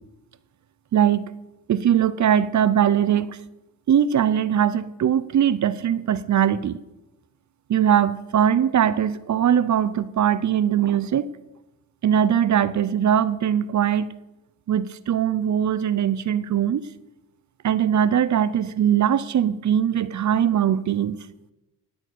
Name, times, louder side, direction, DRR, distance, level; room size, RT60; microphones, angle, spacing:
voice 1, 0.9-1.2 1.7-3.4 3.9-6.8 7.7-11.3 12.0-14.1 14.7-16.9 17.6-21.2, right 9 dB, 55° right, 17 dB, 0.8 m, -21 dB
18.5 x 6.5 x 8.4 m, 0.98 s
cardioid pair, 70°, 35 cm